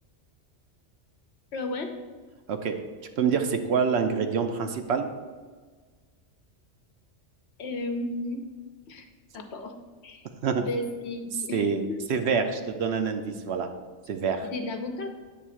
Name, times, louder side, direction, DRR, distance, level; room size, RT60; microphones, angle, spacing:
voice 1, 1.5-1.9 7.6-8.4 8.9-9.1 9.3-9.7 10.0-10.2 10.6-12.0 14.5-15.1, left 2 dB, 65° left, 6 dB, 1.0 m, -33 dB
voice 2, 3.2-5.1 10.4-10.7 11.5-13.7 14.1-14.5, right 6 dB, 65° right, 6 dB, 0.8 m, -26 dB
8.1 x 3.3 x 6.3 m, 1.4 s
omnidirectional pair, 1.2 m